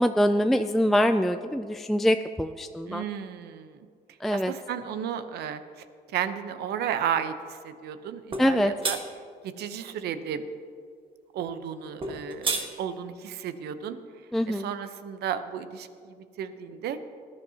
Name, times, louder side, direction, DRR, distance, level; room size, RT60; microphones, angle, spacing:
voice 1, 0.0-3.1 4.2-4.5 8.4-8.7 14.3-14.7, equal, ahead, 8 dB, 0.3 m, -24 dB
voice 2, 2.9-3.9 4.3-5.6 6.1-9.0 9.4-10.5 11.3-14.0 14.5-17.0, right 8 dB, 70° right, 10 dB, 0.9 m, -33 dB
sound 1, 8.3-8.5 8.8-9.0 12.0-12.7, right 3 dB, 30° right, 1.4 m, -28 dB
19.5 x 11.5 x 2.9 m, 2.2 s
cardioid pair, 110°, 17 cm